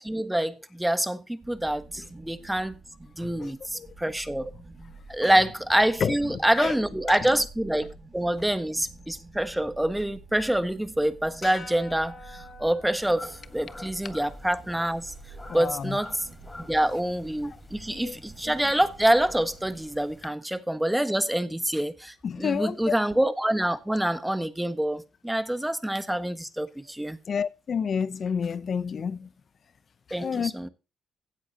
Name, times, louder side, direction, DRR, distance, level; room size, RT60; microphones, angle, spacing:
voice 1, 0.0-2.8 3.2-4.5 5.1-15.1 15.5-16.3 16.7-27.2 30.1-30.7, right 1 dB, 10° right, 1.4 m, -26 dB
sound 1, 1.4-19.9, right 3 dB, 35° right, 3.9 m, -49 dB
voice 2, 3.2-3.9 5.2-5.3 6.0-6.2 6.6-6.8 15.5-16.0 17.9-18.2 18.4-18.5 22.2-22.9 27.3-29.3 30.2-30.5, left 6 dB, 55° left, 0.7 m, -29 dB
sound 2, 11.4-15.8, left 3 dB, 40° left, 5.9 m, -48 dB
sound 3, 13.2-20.3, left 2 dB, 20° left, 4.1 m, -47 dB
16.5 x 8.3 x 2.9 m
supercardioid pair, 50°, 0 cm